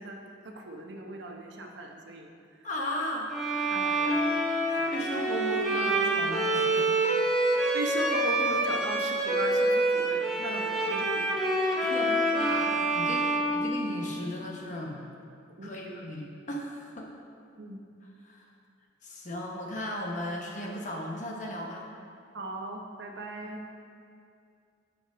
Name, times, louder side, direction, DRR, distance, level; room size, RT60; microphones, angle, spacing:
voice 1, 0.0-2.7 3.7-4.4 4.8-5.1 7.7-11.4 12.0-12.1 15.6-16.1 17.6-17.8 22.3-23.6, right 2 dB, 60° right, 2 dB, 0.8 m, -38 dB
voice 2, 2.6-3.3 4.7-7.0 11.8-15.0 15.6-17.1 18.2-18.4 19.0-21.9, left 1 dB, 40° left, -1 dB, 1.0 m, -36 dB
Bowed string instrument, 3.3-14.3, right 1 dB, ahead, 1.0 m, -27 dB
7.8 x 5.7 x 5.0 m, 2.4 s
head